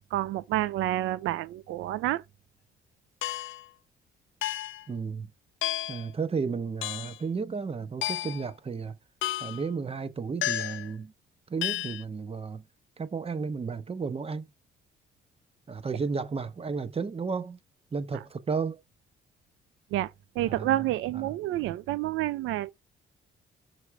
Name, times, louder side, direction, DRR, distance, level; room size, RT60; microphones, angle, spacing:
voice 1, 0.0-2.2 18.1-18.2 19.9-22.7, right 14 dB, 90° right, 0.5 m, -29 dB
sound 1, 3.2-3.7 4.4-4.9 5.6-6.1 6.8-7.2 8.0-8.5 9.2-9.6 10.4-10.9 11.6-12.0, left 14 dB, 75° left, 0.5 m, -32 dB
voice 2, 4.9-5.3 5.9-8.9 9.4-11.1 11.5-12.6 13.0-14.5 15.7-17.6 17.9-18.8 20.4-20.8 21.1-21.2, right 5 dB, 30° right, 1.0 m, -33 dB
6.1 x 3.4 x 4.7 m
cardioid pair, 90°, 20 cm